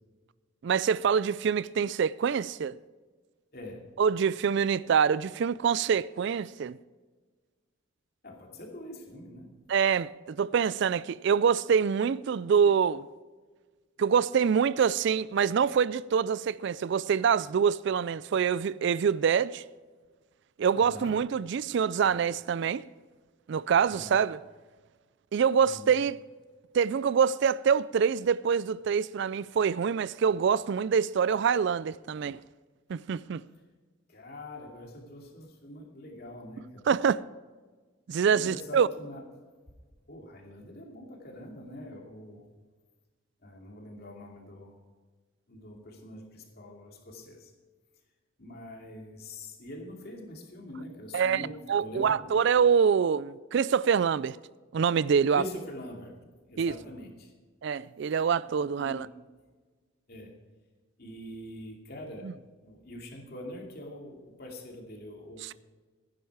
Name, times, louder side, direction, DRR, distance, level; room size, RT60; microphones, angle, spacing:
voice 1, 0.6-2.8 4.0-6.8 9.7-13.1 14.0-19.6 20.6-22.8 23.5-24.4 25.3-26.2 26.7-32.4 32.9-33.4 36.9-37.2 38.1-38.9 51.1-51.4 51.7-54.4 54.7-55.4 56.6-56.8 57.6-59.1 62.2-62.3 65.4-65.5, right 7 dB, 55° right, 0.3 m, -25 dB
voice 2, 3.5-3.9 8.2-9.6 20.7-21.2 22.0-22.2 23.8-24.2 25.6-26.0 34.1-36.9 38.3-39.2 40.1-42.5 43.4-44.8 45.5-47.5 48.4-52.4 55.3-57.3 58.8-59.1 60.1-60.3 61.0-62.3 62.6-65.5, left 1 dB, 45° left, 2.5 m, -44 dB
16.0 x 10.5 x 4.8 m
head